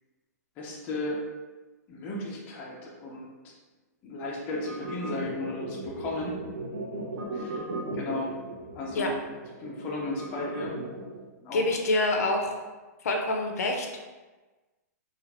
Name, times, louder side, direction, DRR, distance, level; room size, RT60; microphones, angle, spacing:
voice 1, 0.6-1.2 1.9-3.6 4.0-6.4 7.3-7.6 7.9-8.3 8.7-9.2 9.6-10.8 11.4-11.7, left 2 dB, 20° left, -4 dB, 0.5 m, -34 dB
sound 1, 4.5-11.2, right 2 dB, 70° right, 1.0 m, -37 dB
voice 2, 11.5-12.5 13.0-13.9, left 2 dB, 65° left, 2 dB, 0.7 m, -26 dB
4.0 x 2.5 x 4.2 m, 1.2 s
hypercardioid pair, 175°, 9 cm